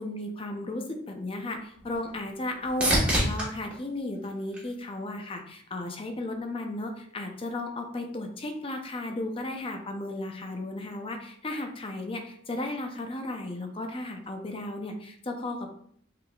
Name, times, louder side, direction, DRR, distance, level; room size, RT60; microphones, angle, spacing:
voice 1, 0.0-15.7, left 2 dB, 30° left, 4 dB, 0.5 m, -34 dB
sound 1, 1.1-5.3 5.8-6.4 14.2-14.3, equal, 5° right, 1.2 m, -31 dB
5.7 x 3.5 x 2.3 m, 0.64 s
head